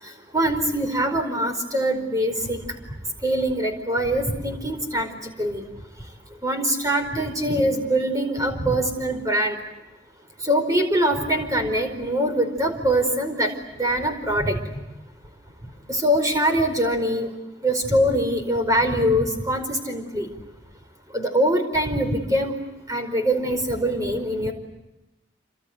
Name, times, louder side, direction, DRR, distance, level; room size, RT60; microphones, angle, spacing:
voice 1, 0.3-2.6 3.2-5.6 6.4-9.5 10.4-13.5 13.8-14.6 15.9-17.3 17.6-20.3 21.1-22.5 22.9-24.5, right 1 dB, 20° right, 5 dB, 4.7 m, -23 dB
28.5 x 26.5 x 8.0 m, 0.97 s
head